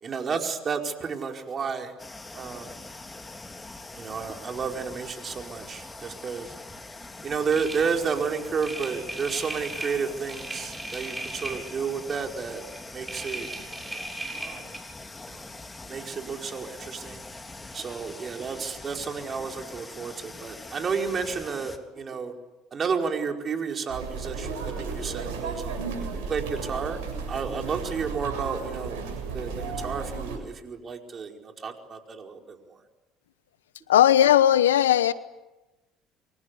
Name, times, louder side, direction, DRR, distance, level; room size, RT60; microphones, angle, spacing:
voice 1, 0.0-1.9 2.3-2.7 4.0-6.5 7.2-12.6 12.9-13.5 14.4-14.6 15.3-15.4 15.9-17.2 17.7-22.3 22.7-25.9 26.3-27.0 27.3-29.0 29.3-29.5 29.8-31.3 31.6-32.6, right 5 dB, 40° right, 3 dB, 5.0 m, -31 dB
sound 1, 2.0-21.8, left 2 dB, 20° left, 3.4 m, -43 dB
sound 2, 7.5-12.2 12.5-14.8, right 2 dB, 15° right, 7.4 m, -38 dB
sound 3, 23.9-30.4, right 5 dB, 80° right, 7.6 m, -34 dB
voice 2, 33.9-35.1, left 11 dB, 85° left, 16 dB, 1.0 m, -18 dB
29.0 x 24.5 x 8.5 m, 1.0 s
hypercardioid pair, 65°, 0 cm